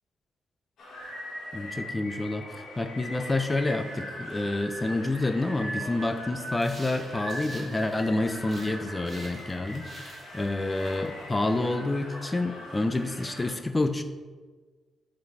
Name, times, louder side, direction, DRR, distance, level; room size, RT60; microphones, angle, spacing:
sound 1, 0.8-13.5, equal, 70° left, 1.5 m, -40 dB
voice 1, 1.5-14.0, left 2 dB, 15° left, 8 dB, 0.4 m, -28 dB
sound 2, 6.5-8.8 9.0-11.6, right 2 dB, 25° right, 1.1 m, -49 dB
6.0 x 4.0 x 4.4 m, 1.4 s
wide cardioid pair, 170°, 0 cm